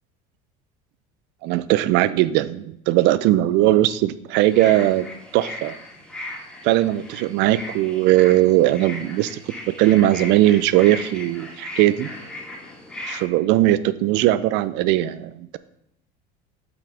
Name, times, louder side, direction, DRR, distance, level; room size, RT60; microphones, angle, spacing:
voice 1, 1.4-5.1 5.3-5.8 6.6-9.4 9.7-12.1 13.1-15.6, right 15 dB, 65° right, 15 dB, 0.5 m, -19 dB
sound 1, 4.3-13.2, left 1 dB, 5° left, 3.2 m, -37 dB
8.8 x 6.0 x 3.4 m, 0.76 s
supercardioid pair, 120°, 20 cm